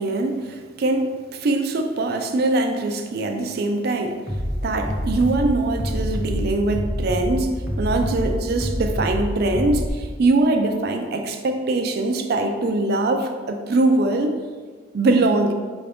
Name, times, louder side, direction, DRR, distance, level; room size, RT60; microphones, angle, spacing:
voice 1, 0.0-4.2 4.6-14.3 14.9-15.5, right 2 dB, 55° right, 5 dB, 0.4 m, -22 dB
Bass drum, 4.3-9.9, equal, 5° right, 0.7 m, -26 dB
5.6 x 2.6 x 3.4 m, 1.5 s
head